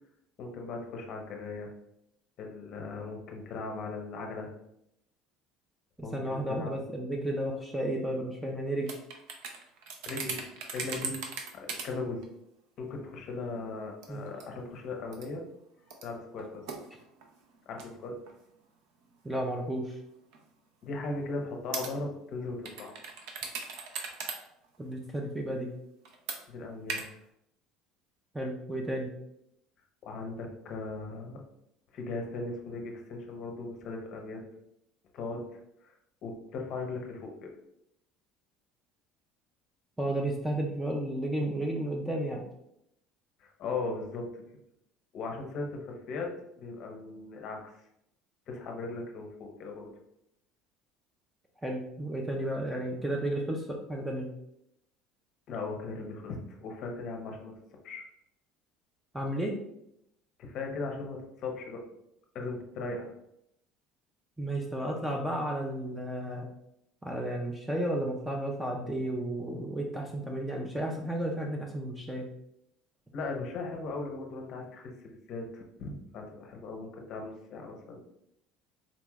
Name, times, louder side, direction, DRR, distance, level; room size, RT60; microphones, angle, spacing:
voice 1, 0.4-1.7 2.4-4.5 6.0-6.7 10.0-10.4 10.7-11.2 11.5-12.2 12.8-15.4 16.0-16.6 17.7-18.2 20.8-22.9 26.5-27.0 30.0-31.4 31.9-34.4 35.1-35.9 36.2-37.3 43.4-44.3 45.1-46.3 46.6-47.7 48.5-49.9 55.5-57.5 57.8-58.0 60.4-61.8 62.3-63.1 73.1-74.9 75.3-78.0, left 3 dB, 40° left, 2 dB, 0.6 m, -38 dB
voice 2, 6.0-9.0 14.1-14.3 19.2-19.9 24.8-25.7 28.3-29.1 40.0-42.4 51.6-54.3 59.1-59.6 64.4-66.5 67.0-72.3, right 1 dB, 5° right, 0 dB, 0.3 m, -33 dB
sound 1, 8.9-11.9 12.2-12.3 12.9-13.0 14.0-14.6 15.1-15.3 15.9-17.9 18.3-18.4 19.1-19.4 20.3-20.5 21.7-21.9 22.7-24.4 24.6-24.8 26.0-26.4 26.9-27.0, right 5 dB, 65° right, 0.5 m, -38 dB
3.9 x 3.0 x 2.3 m, 0.78 s
cardioid pair, 170°, 0 cm